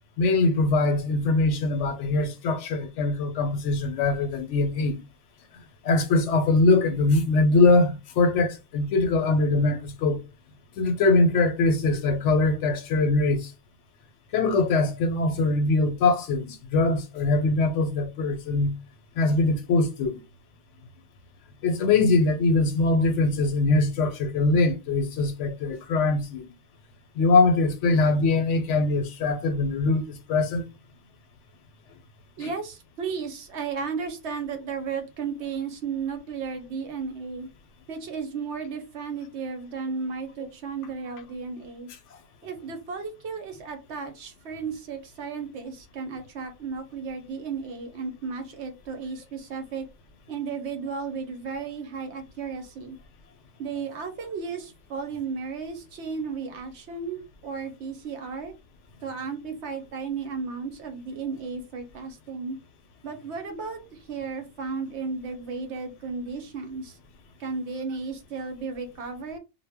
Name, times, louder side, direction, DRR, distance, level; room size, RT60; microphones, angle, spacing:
voice 1, 0.2-5.0 5.8-10.2 10.8-13.5 14.3-18.7 19.2-20.2 21.6-26.5 27.2-30.6 32.4-32.5, left 3 dB, 75° left, 0.9 m, -22 dB
voice 2, 32.4-37.5 37.9-41.9 42.4-49.9 50.3-53.0 53.6-58.5 59.0-62.6 63.0-67.0 67.4-69.4, right 5 dB, 70° right, 0.9 m, -34 dB
2.1 x 2.0 x 3.4 m
omnidirectional pair, 1.3 m